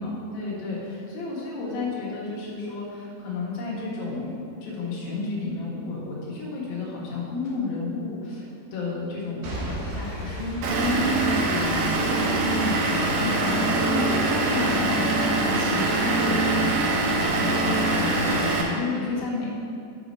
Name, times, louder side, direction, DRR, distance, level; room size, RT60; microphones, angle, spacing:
voice 1, 0.0-12.3 12.6-19.6, left 3 dB, 65° left, -5 dB, 2.7 m, -31 dB
Boom / Shatter / Crushing, 9.4-13.4 14.0-14.1, right 1 dB, 65° right, 2.7 m, -37 dB
Vehicle / Engine, 10.6-18.6, right 2 dB, 85° right, 1.9 m, -23 dB
7.9 x 4.9 x 5.2 m, 2.5 s
omnidirectional pair, 5.1 m